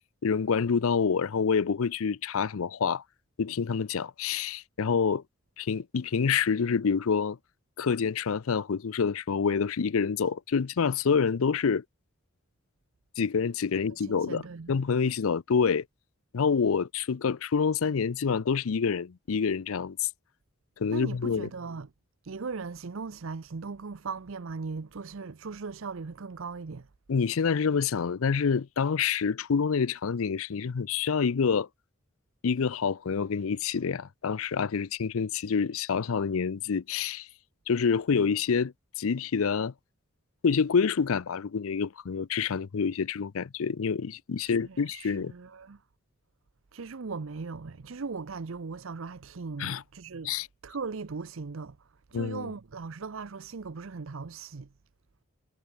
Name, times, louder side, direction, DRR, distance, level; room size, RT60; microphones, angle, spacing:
voice 1, 0.2-3.0 3.4-5.2 5.6-7.4 7.8-11.8 13.2-14.4 14.7-15.8 16.3-20.1 20.8-21.5 27.1-31.7 32.4-37.3 37.7-39.7 40.4-45.3 49.6-49.8 50.2-50.5 52.1-52.5, left 6 dB, 75° left, 0.5 m, -27 dB
voice 2, 14.0-15.1 20.9-21.9 22.2-26.9 44.4-45.8 46.7-50.3 50.6-54.7, right 4 dB, 65° right, 0.6 m, -39 dB
head